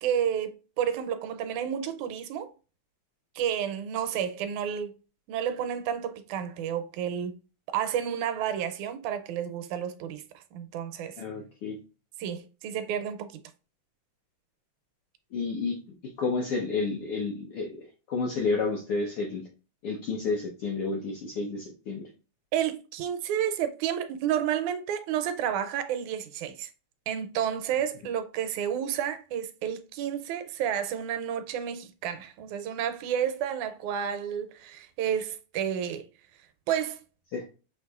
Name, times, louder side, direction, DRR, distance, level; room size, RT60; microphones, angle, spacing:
voice 1, 0.0-2.5 3.4-4.9 5.3-7.4 7.7-10.2 10.5-11.2 12.2-13.3 22.5-26.7 27.1-36.1 36.7-37.0, right 9 dB, 85° right, 1.9 m, -31 dB
voice 2, 11.2-11.8 15.3-15.8 16.2-19.4 19.8-22.0 37.3-37.4, left 4 dB, 75° left, 1.3 m, -30 dB
6.3 x 3.0 x 2.3 m
omnidirectional pair, 3.4 m